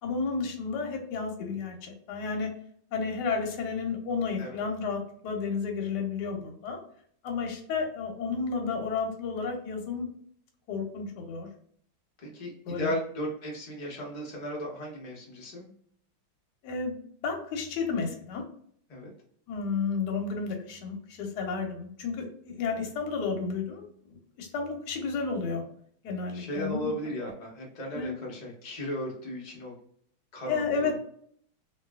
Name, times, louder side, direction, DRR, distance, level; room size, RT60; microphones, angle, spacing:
voice 1, 0.0-2.5 2.9-6.8 7.2-10.1 10.7-11.5 12.6-12.9 16.6-16.9 17.2-18.4 19.5-25.6 26.0-26.9 27.9-28.1 30.5-31.0, left 5 dB, 65° left, 2 dB, 1.2 m, -32 dB
voice 2, 12.2-15.7 18.9-19.1 26.3-29.7 30.3-30.9, equal, 45° left, -3 dB, 0.5 m, -36 dB
3.2 x 2.6 x 2.3 m, 0.62 s
omnidirectional pair, 2.3 m